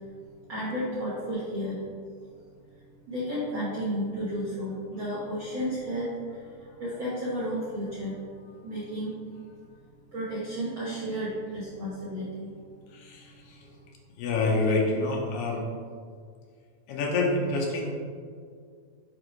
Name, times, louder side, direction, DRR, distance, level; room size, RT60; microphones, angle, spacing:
voice 1, 0.5-1.8 3.1-8.2 8.6-9.1 10.1-12.5, equal, 70° right, -9 dB, 1.2 m, -32 dB
voice 2, 12.9-13.3 14.2-15.6 16.9-17.9, left 3 dB, 85° left, -1 dB, 2.6 m, -27 dB
6.6 x 4.9 x 3.1 m, 2.1 s
omnidirectional pair, 3.9 m